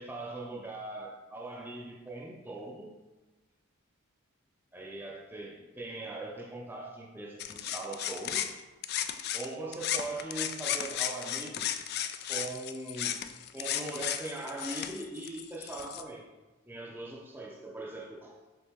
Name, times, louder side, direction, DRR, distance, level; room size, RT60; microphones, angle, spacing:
voice 1, 0.0-2.9 4.7-8.5 9.3-11.7 12.3-13.2 13.5-16.2 16.7-18.4, right 2 dB, 10° right, -2 dB, 0.5 m, -40 dB
sound 1, 7.4-9.5 9.7-16.0, left 10 dB, 50° left, 0.3 m, -35 dB
6.9 x 3.8 x 3.6 m, 1.1 s
head